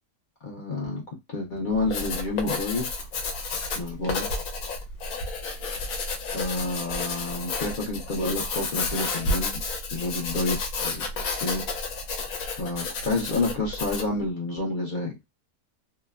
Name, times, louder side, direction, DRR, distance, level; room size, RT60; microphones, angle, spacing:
voice 1, 0.4-1.0 1.3-2.9 3.7-4.3 6.3-9.6 9.9-11.6 12.6-15.2, left 2 dB, 60° left, 0.5 m, -29 dB
Writing, 1.7-14.2, left 3 dB, 75° left, 1.1 m, -31 dB
2.9 x 2.1 x 2.3 m
omnidirectional pair, 1.5 m